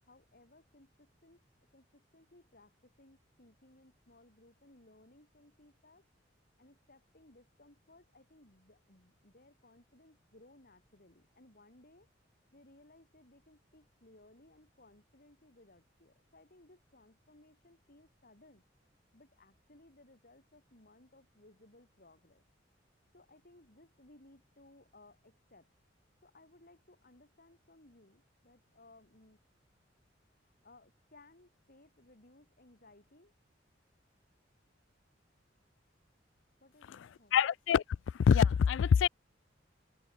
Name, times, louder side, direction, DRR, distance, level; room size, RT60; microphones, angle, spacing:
voice 1, 0.0-1.5 1.7-6.0 6.6-12.1 12.5-18.6 19.1-22.4 23.1-25.7 26.2-29.4 30.3-33.3 36.6-37.4, left 2 dB, 50° left, 4.4 m, -62 dB
voice 2, 37.3-37.8 38.2-39.1, left 7 dB, 80° left, 0.3 m, -24 dB
head